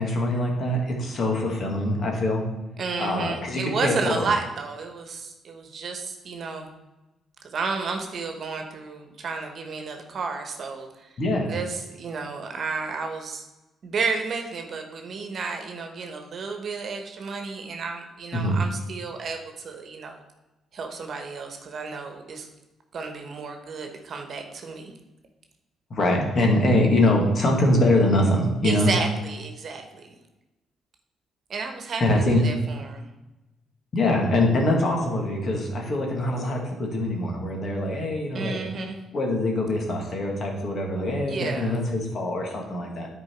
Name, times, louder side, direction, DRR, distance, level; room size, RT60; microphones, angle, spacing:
voice 1, 0.0-2.4 3.0-4.3 11.2-11.5 18.3-18.6 25.9-28.9 32.0-32.4 33.9-38.6 39.1-43.1, left 1 dB, 50° left, 0 dB, 2.0 m, -23 dB
voice 2, 2.8-6.7 7.5-11.1 11.5-13.4 13.8-20.2 20.7-22.5 22.9-24.9 28.6-30.1 31.5-32.0 32.3-33.1 38.3-39.0 41.3-41.8, right 4 dB, 55° right, 4 dB, 1.2 m, -32 dB
9.7 x 4.6 x 4.6 m, 1.0 s
cardioid pair, 90°, 0 cm